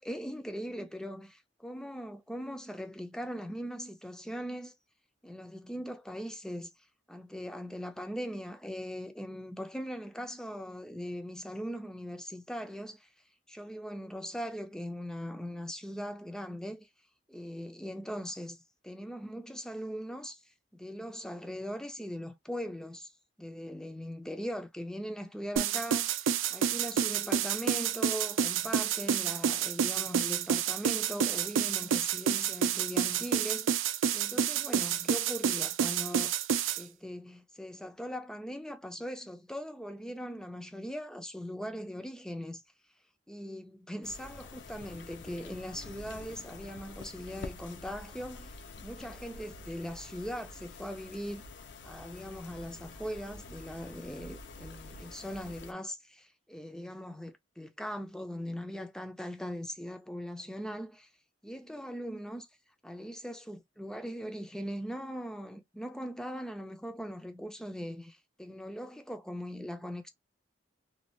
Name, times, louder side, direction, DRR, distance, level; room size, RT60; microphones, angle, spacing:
voice 1, 0.0-4.7 5.2-6.7 7.1-13.1 13.5-16.9 17.3-23.1 23.4-33.7 34.1-36.3 36.7-42.6 43.3-48.6 48.8-51.4 51.8-61.1 61.4-62.5 62.8-70.1, equal, 5° left, 0.3 m, -40 dB
sound 1, 25.6-36.8, right 8 dB, 85° right, 0.4 m, -29 dB
sound 2, 44.0-55.7, left 3 dB, 65° left, 0.5 m, -47 dB
2.6 x 2.2 x 3.1 m
head